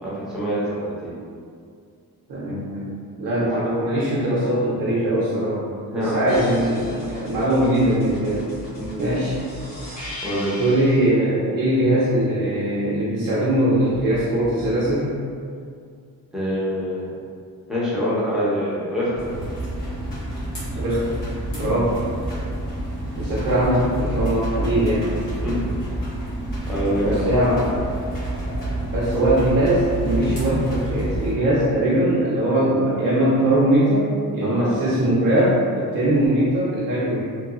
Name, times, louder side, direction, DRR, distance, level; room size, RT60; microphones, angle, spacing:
voice 1, 0.0-1.1 5.9-6.2 8.8-9.0 10.2-10.6 16.3-17.0 17.7-19.3 21.7-21.8 25.4-25.6 26.7-27.4 34.4-34.9, equal, ahead, -10 dB, 0.7 m, -25 dB
voice 2, 2.3-5.6 5.9-8.5 9.0-9.4 10.6-15.2 20.7-21.2 21.5-22.0 23.2-25.1 27.0-27.9 28.9-37.2, right 1 dB, 65° right, -8 dB, 0.6 m, -21 dB
sound 1, 6.3-11.1 13.9-14.9, equal, 45° left, 1.5 m, -37 dB
sound 2, 19.2-31.4, right 1 dB, 65° left, 1.2 m, -28 dB
2.9 x 2.2 x 2.4 m, 2.3 s
wide cardioid pair, 130°, 37 cm